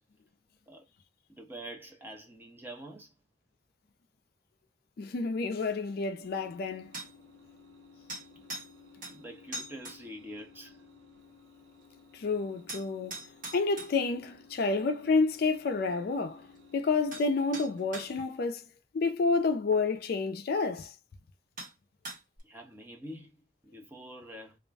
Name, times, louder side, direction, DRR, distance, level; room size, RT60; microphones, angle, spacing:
voice 1, 1.3-3.1 9.1-10.8 22.4-24.6, right 1 dB, 10° right, 0.5 m, -46 dB
voice 2, 5.0-6.9 12.1-13.2 13.5-16.5 16.7-18.6 18.9-20.9, left 4 dB, 55° left, 0.4 m, -29 dB
sound 1, 6.2-18.5, left 4 dB, 80° right, 1.2 m, -57 dB
Anvil & Copper Hammer, 6.9-7.1 8.1-8.7 9.0-9.2 9.5-10.0 12.7-13.9 16.5-16.6 17.1-17.3 17.5-18.1 19.7-19.8 20.8-20.9 21.6-21.7 22.0-22.4, right 2 dB, 50° right, 1.2 m, -41 dB
2.4 x 2.1 x 3.2 m
head